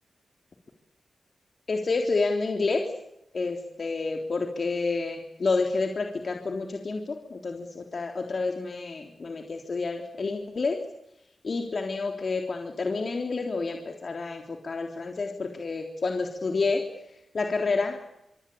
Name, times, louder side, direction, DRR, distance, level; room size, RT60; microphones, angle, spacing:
voice 1, 1.7-2.8 3.3-10.8 11.4-16.8 17.3-18.0, left 3 dB, 60° left, 3 dB, 3.6 m, -29 dB
25.5 x 24.5 x 8.7 m, 0.85 s
cardioid pair, 50°, 0 cm